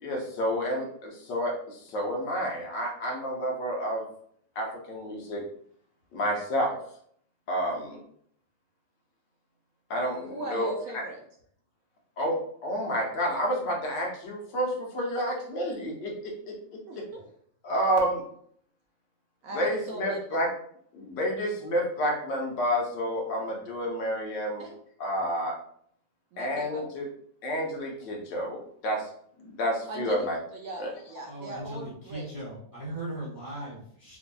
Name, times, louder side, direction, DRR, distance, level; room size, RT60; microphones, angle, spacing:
voice 1, 0.0-4.0 4.6-5.4 6.1-6.8 7.5-8.0 9.9-10.7 12.2-12.4 12.6-16.3 17.6-18.2 19.5-20.5 20.9-24.7 25.0-25.5 26.4-27.1 27.4-29.1 29.4-30.4 30.8-30.9, equal, 85° left, -1 dB, 1.6 m, -29 dB
voice 2, 10.3-11.2 16.9-17.2 19.4-20.4 24.6-24.7 26.3-26.9 29.9-32.3, right 2 dB, 65° right, 0 dB, 0.9 m, -39 dB
voice 3, 31.3-34.2, right 1 dB, 15° right, -7 dB, 0.7 m, -38 dB
4.9 x 2.6 x 2.3 m, 0.64 s
omnidirectional pair, 1.8 m